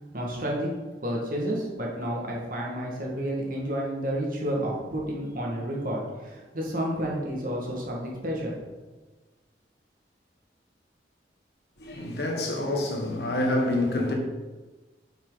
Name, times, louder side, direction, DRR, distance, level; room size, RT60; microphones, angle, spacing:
voice 1, 0.1-0.7 1.0-8.6, equal, 50° right, 2.0 m, -30 dB
voice 2, 11.8-14.1, left 1 dB, 65° left, 1.5 m, -27 dB
8.3 x 6.0 x 4.0 m
head